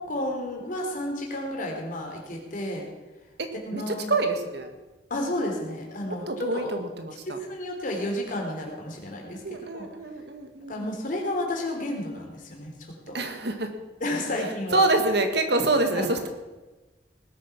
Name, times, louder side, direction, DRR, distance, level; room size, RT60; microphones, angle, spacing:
voice 1, 0.0-2.9 3.5-4.1 5.1-6.7 7.3-9.9 10.7-12.7 13.1-13.2 14.0-14.8 15.9-16.1, left 1 dB, 50° left, 1 dB, 3.3 m, -31 dB
voice 2, 3.4-4.7 6.0-7.4 9.3-10.9 13.1-13.7 14.3-16.3, right 2 dB, 65° right, 6 dB, 1.7 m, -27 dB
19.0 x 8.6 x 5.9 m, 1.2 s
head